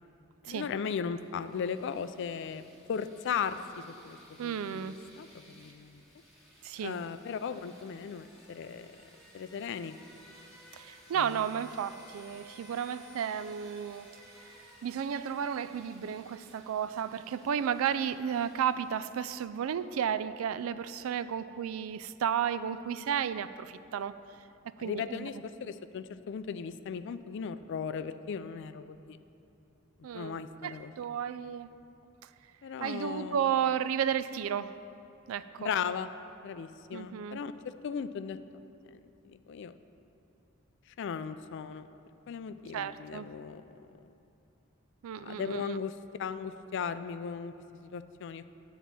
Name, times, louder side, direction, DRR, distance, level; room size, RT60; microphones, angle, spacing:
voice 1, 0.5-2.6 2.9-6.0 6.8-8.9 9.3-10.0 11.1-11.4 24.8-29.2 30.1-30.9 32.6-33.5 35.6-36.1 36.4-37.5 37.8-38.4 38.9-39.0 39.2-39.7 41.0-41.9 42.3-43.9 45.2-48.5, left 6 dB, 60° left, 12 dB, 0.3 m, -37 dB
sound 1, 1.0-19.7, equal, ahead, 1.4 m, -58 dB
voice 2, 4.4-5.0 6.6-7.0 10.7-14.1 14.8-24.2 24.8-25.3 30.0-30.4 30.6-31.7 32.8-34.8 35.3-35.7 36.9-37.4 42.7-43.3 45.0-45.8, right 8 dB, 80° right, 14 dB, 0.3 m, -33 dB
10.0 x 4.1 x 7.4 m, 2.9 s
head